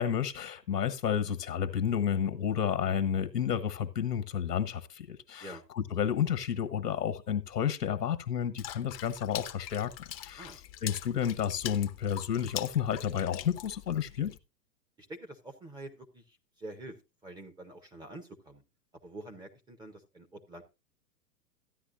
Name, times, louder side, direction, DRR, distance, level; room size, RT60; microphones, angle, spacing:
voice 1, 0.0-5.5 5.8-9.9 10.2-10.5 10.8-14.3, left 8 dB, 70° left, 1.4 m, -31 dB
Water / Splash splatter, 8.6-14.4, left 12 dB, 35° left, 0.8 m, -43 dB
voice 2, 15.0-17.0 17.2-18.6 19.0-20.6, right 2 dB, 10° right, 0.8 m, -46 dB
14.0 x 10.0 x 2.5 m
figure-of-eight pair, 110°, 50 cm